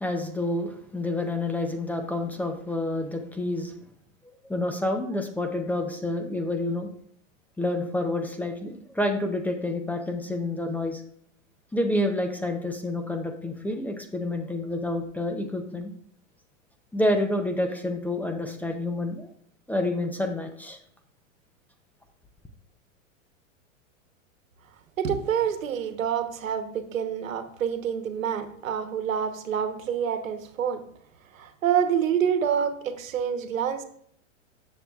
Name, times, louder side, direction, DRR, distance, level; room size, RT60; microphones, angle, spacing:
voice 1, 0.0-3.7 4.5-6.9 7.6-11.0 11.7-15.9 16.9-19.3 19.7-20.8, left 1 dB, 5° left, 4 dB, 0.6 m, -28 dB
voice 2, 25.0-30.8 31.3-33.8, right 8 dB, 80° right, 8 dB, 1.2 m, -27 dB
10.0 x 7.1 x 2.4 m, 0.66 s
hypercardioid pair, 115°, 39 cm